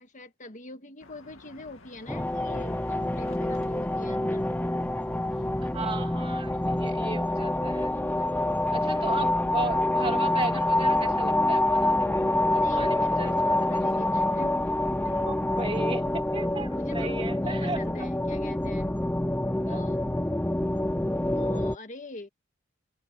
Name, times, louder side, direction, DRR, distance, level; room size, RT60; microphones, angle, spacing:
voice 1, 0.0-4.8 5.1-5.6 7.8-8.9 12.5-14.5 15.0-15.2 16.7-18.9 19.6-20.0 21.3-22.3, left 2 dB, 40° left, 1.7 m, -44 dB
sound 1, 1.0-18.7, left 2 dB, 70° left, 2.4 m, -54 dB
sound 2, 2.1-21.8, left 1 dB, 10° left, 0.6 m, -26 dB
voice 2, 5.6-7.9 8.7-12.2 12.5-13.6 15.1-18.1 19.7-19.8, right 3 dB, 25° right, 2.6 m, -35 dB
head